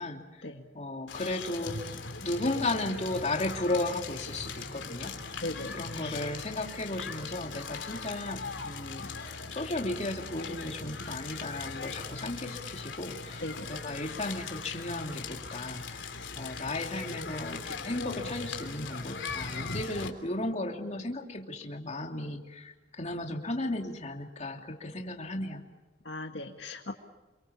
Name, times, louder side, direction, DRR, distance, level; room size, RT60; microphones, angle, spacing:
voice 1, 0.0-0.5 0.7-5.1 5.7-9.1 9.5-16.1 16.4-25.6, left 2 dB, 40° left, 2 dB, 2.9 m, -35 dB
Crackle, 1.1-20.1, left 4 dB, 85° left, 3.3 m, -40 dB
voice 2, 5.4-6.3 11.1-11.2 13.4-13.7 26.0-26.9, left 2 dB, 70° left, 4 dB, 1.9 m, -39 dB
28.5 x 24.0 x 7.1 m, 1.2 s
head